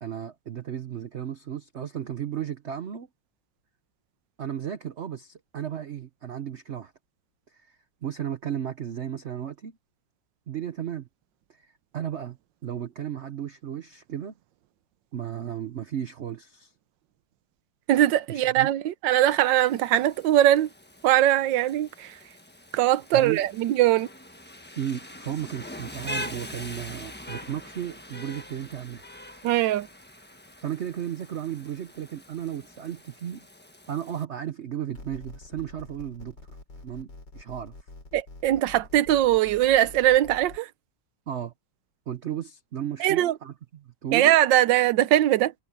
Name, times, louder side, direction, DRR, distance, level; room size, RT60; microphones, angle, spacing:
voice 1, 0.0-3.1 4.4-6.9 7.5-9.8 10.5-11.1 11.5-12.4 12.6-14.3 15.1-16.7 18.3-18.7 23.1-23.4 24.8-29.0 30.6-33.4 33.9-36.4 36.8-37.7 41.3-41.5 42.1-44.3, right 10 dB, 50° right, 0.8 m, -34 dB
voice 2, 17.9-20.7 21.0-22.2 22.7-24.1 29.4-29.9 38.1-40.7 43.0-43.3 44.1-45.5, right 13 dB, 80° right, 1.3 m, -21 dB
Rain, 19.1-34.2, left 1 dB, 5° left, 1.0 m, -43 dB
sound 1, 34.9-40.6, left 3 dB, 65° left, 5.0 m, -46 dB
omnidirectional pair, 2.0 m